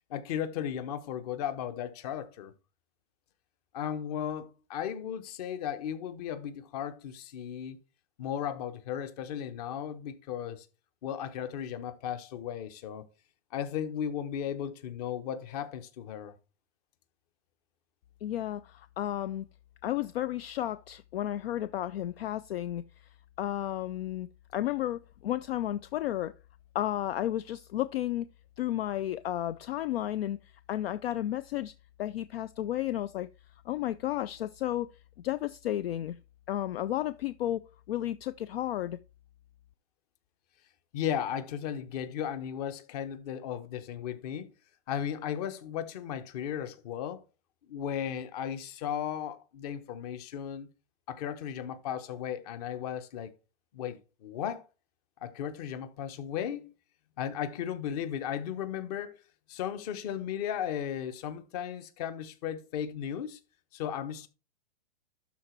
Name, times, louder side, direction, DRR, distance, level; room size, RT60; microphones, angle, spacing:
voice 1, 0.1-2.5 3.7-7.8 8.2-10.7 11.0-13.0 13.5-16.3 40.9-44.5 44.9-47.2 47.7-50.7 51.1-53.3 53.7-54.6 55.2-56.7 57.2-59.2 59.5-63.4 63.7-64.3, left 9 dB, 35° left, 1.0 m, -35 dB
voice 2, 18.2-19.5 19.8-22.8 23.4-24.3 24.5-26.3 26.7-28.3 28.6-30.4 30.7-31.7 32.0-33.3 33.7-34.9 35.2-36.2 36.5-39.0, left 13 dB, 60° left, 0.5 m, -32 dB
12.0 x 4.1 x 4.5 m
hypercardioid pair, 160°, 34 cm